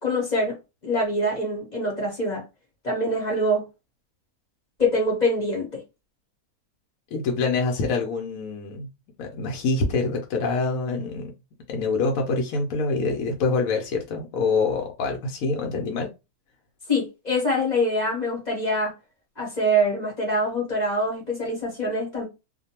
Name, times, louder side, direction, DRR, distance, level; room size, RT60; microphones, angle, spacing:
voice 1, 0.0-0.6 0.8-2.4 2.8-3.6 4.8-5.8 16.9-18.9 19.4-22.2, equal, 35° left, 0.8 m, -24 dB
voice 2, 7.1-8.9 9.2-11.3 11.7-16.1, left 4 dB, 70° left, 0.9 m, -25 dB
2.4 x 2.2 x 2.8 m
omnidirectional pair, 1.6 m